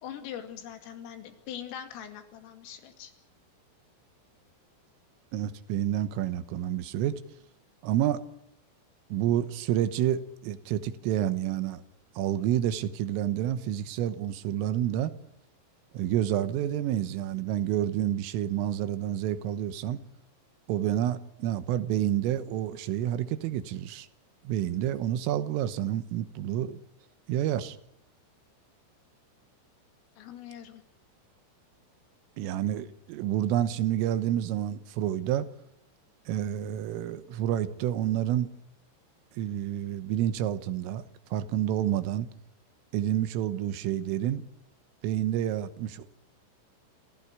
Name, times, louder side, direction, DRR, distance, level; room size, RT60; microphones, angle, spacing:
voice 1, 0.0-3.1 30.2-30.8, left 10 dB, 85° left, 5.0 m, -42 dB
voice 2, 5.3-7.2 7.8-8.2 9.1-11.8 12.2-15.1 15.9-20.0 20.7-24.1 24.5-26.8 27.3-27.8 32.4-35.5 36.3-38.5 39.4-41.0 41.3-42.3 42.9-44.4 45.0-46.1, right 11 dB, 85° right, 3.8 m, -29 dB
28.0 x 15.5 x 9.6 m
omnidirectional pair, 5.7 m